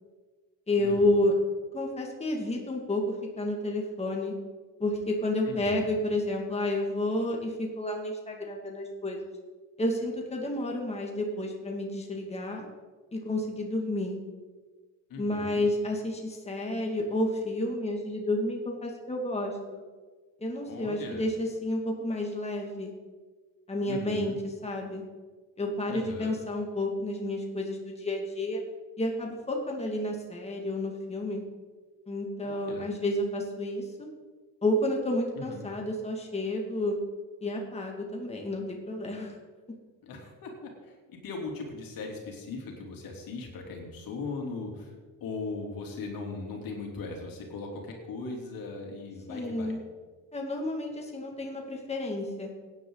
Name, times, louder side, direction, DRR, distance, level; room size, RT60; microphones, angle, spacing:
voice 1, 0.7-1.3 1.7-4.3 4.8-9.2 9.8-12.7 13.1-14.2 15.2-19.8 20.4-22.9 23.7-25.0 25.6-28.6 29.0-31.4 32.1-34.1 34.6-37.0 37.4-39.4 49.3-49.8 50.3-52.5, left 1 dB, 15° left, 0 dB, 2.2 m, -30 dB
voice 2, 5.5-5.9 15.1-15.6 20.7-21.3 23.8-24.4 25.9-26.3 32.4-32.9 35.3-35.7 40.0-44.9 45.2-49.8, left 3 dB, 65° left, 1 dB, 3.3 m, -39 dB
16.0 x 10.0 x 4.0 m, 1.4 s
cardioid pair, 95°, 36 cm